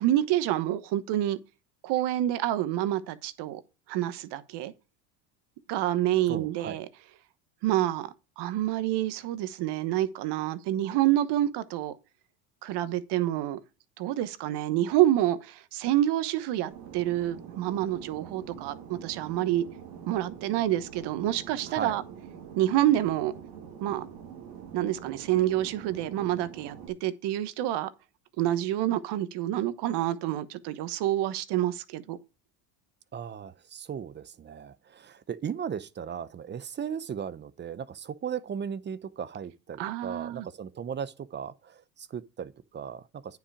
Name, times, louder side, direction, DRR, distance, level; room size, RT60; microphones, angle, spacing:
voice 1, 0.0-1.4 1.8-3.6 3.9-4.7 5.7-6.9 7.6-11.9 12.6-13.6 14.0-19.6 20.1-22.0 22.6-23.3 23.8-24.0 24.7-27.9 28.4-32.2 39.8-40.5, right 13 dB, 55° right, 1.2 m, -27 dB
voice 2, 6.3-6.8 21.7-22.0 33.1-43.4, right 8 dB, 25° right, 0.6 m, -37 dB
Fixed-wing aircraft airplane, 16.7-26.9, right 8 dB, 85° right, 2.2 m, -45 dB
9.5 x 5.8 x 4.9 m
supercardioid pair, 105°, 48 cm